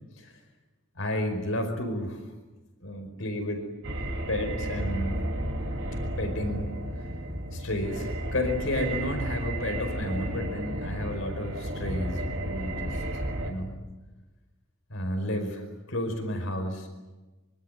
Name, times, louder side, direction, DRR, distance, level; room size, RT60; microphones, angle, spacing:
voice 1, 1.0-2.2 2.8-3.6 4.3-5.2 6.2-6.7 7.5-13.0 13.4-13.7 14.9-16.9, left 1 dB, 70° left, 6 dB, 5.0 m, -31 dB
sound 1, 3.8-13.5, right 1 dB, 70° right, 4.6 m, -33 dB
25.5 x 25.5 x 9.2 m, 1.2 s
head